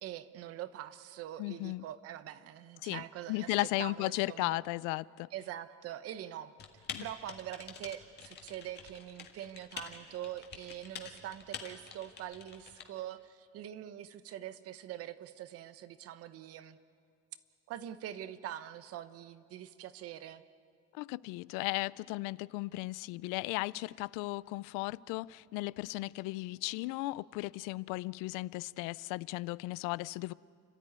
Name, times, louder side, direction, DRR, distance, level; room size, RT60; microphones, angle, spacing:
voice 1, 0.0-4.6 5.3-6.5 7.0-16.8 17.7-20.4, right 12 dB, 50° right, 1.0 m, -44 dB
voice 2, 1.4-1.8 2.8-5.3 6.9-7.1 20.9-30.3, left 21 dB, 80° left, 0.5 m, -36 dB
Typing, 6.6-12.8, left 7 dB, 35° left, 1.8 m, -47 dB
30.0 x 13.0 x 9.5 m
cardioid pair, 165°, 31 cm